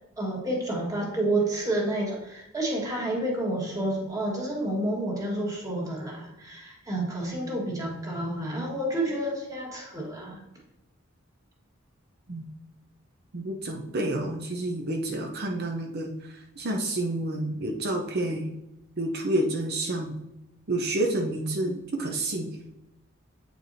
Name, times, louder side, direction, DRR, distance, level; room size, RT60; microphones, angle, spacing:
voice 1, 0.2-10.4, right 1 dB, 15° right, -2 dB, 1.5 m, -29 dB
voice 2, 13.3-18.5 19.0-20.2 20.7-22.6, right 1 dB, 50° right, 2 dB, 0.7 m, -29 dB
8.4 x 4.6 x 2.6 m, 0.92 s
head